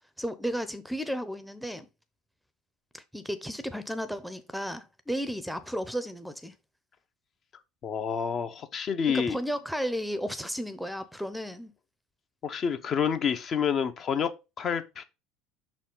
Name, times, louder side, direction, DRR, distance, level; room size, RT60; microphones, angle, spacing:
voice 1, 0.2-1.9 2.9-6.5 9.1-11.7, equal, ahead, 0.7 m, -33 dB
voice 2, 7.8-9.4 12.4-15.0, left 7 dB, 45° left, 0.9 m, -28 dB
5.9 x 4.2 x 3.8 m
hypercardioid pair, 75°, 0 cm